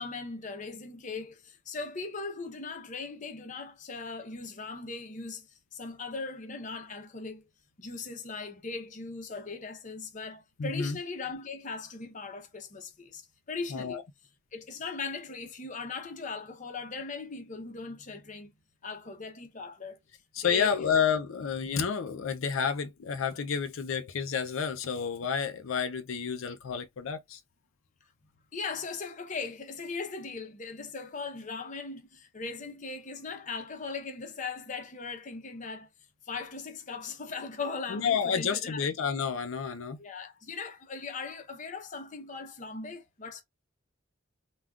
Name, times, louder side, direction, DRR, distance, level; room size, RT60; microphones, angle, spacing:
voice 1, 0.0-7.4 7.8-14.0 14.5-18.5 18.8-20.0 20.4-20.7 28.5-35.9 36.3-38.9 40.0-43.4, left 4 dB, 40° left, 0.7 m, -39 dB
voice 2, 10.6-11.0 13.7-14.0 20.3-27.4 37.9-40.0, left 6 dB, 85° left, 0.5 m, -30 dB
3.5 x 2.3 x 2.3 m
head